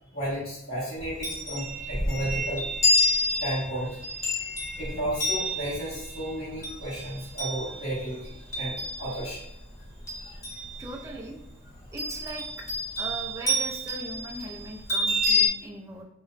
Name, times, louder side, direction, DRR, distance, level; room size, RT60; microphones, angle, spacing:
voice 1, 0.1-2.6 3.3-4.0 4.7-9.4 10.1-10.4, right 1 dB, 70° left, -12 dB, 1.4 m, -33 dB
Chime, 1.0-9.5 9.8-11.2 12.0-15.5, left 1 dB, 15° left, 1.0 m, -29 dB
voice 2, 10.8-11.4 11.9-12.7 13.0-16.0, right 1 dB, 15° right, -1 dB, 0.3 m, -39 dB
3.0 x 2.1 x 3.8 m, 0.84 s
head